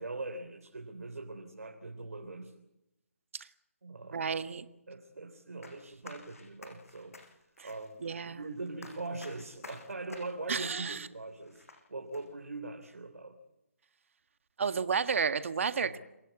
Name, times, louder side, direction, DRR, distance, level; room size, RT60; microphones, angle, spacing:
voice 1, 0.0-2.6 3.8-4.2 4.9-7.4 7.6-13.4 15.8-16.0, right 2 dB, 85° right, 4 dB, 3.6 m, -42 dB
voice 2, 4.1-4.6 7.6-7.7 8.0-8.4 10.5-11.1 14.6-16.0, right 6 dB, 60° right, 10 dB, 1.6 m, -32 dB
sound 1, 5.6-11.8 12.1-12.2, left 3 dB, 70° left, 7.7 m, -52 dB
28.0 x 17.5 x 8.4 m, 0.93 s
hypercardioid pair, 155°, 8 cm